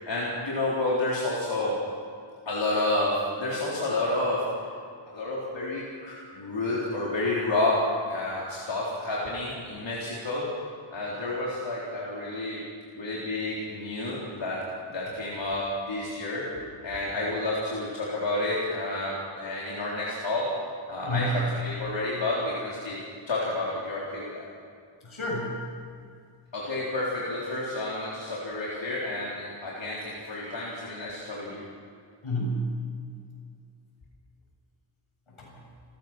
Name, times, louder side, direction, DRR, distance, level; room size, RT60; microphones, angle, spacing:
voice 1, 0.1-1.8 2.5-4.6 5.1-7.8 8.1-10.5 10.9-12.6 13.0-16.5 16.8-20.5 20.9-23.0 23.3-24.4 26.5-31.6, left 2 dB, 65° left, -6 dB, 4.0 m, -30 dB
voice 2, 21.0-21.5 25.0-25.7 32.2-32.9 35.4-35.6, equal, 85° left, -3 dB, 7.8 m, -30 dB
30.0 x 14.5 x 6.2 m, 2.2 s
wide cardioid pair, 105°, 48 cm